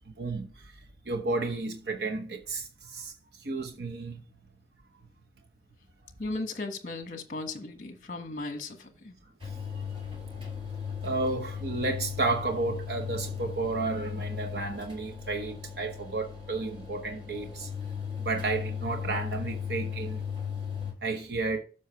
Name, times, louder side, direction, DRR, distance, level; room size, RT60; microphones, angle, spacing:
voice 1, 0.2-0.5 1.1-3.1 3.4-4.2 11.0-17.7 18.2-20.2 21.0-21.6, right 3 dB, 65° right, 0.9 m, -32 dB
voice 2, 6.2-9.2, left 2 dB, 45° left, 1.3 m, -36 dB
sound 1, 9.4-20.9, left 7 dB, 30° right, 3.3 m, -37 dB
7.5 x 5.6 x 4.8 m
head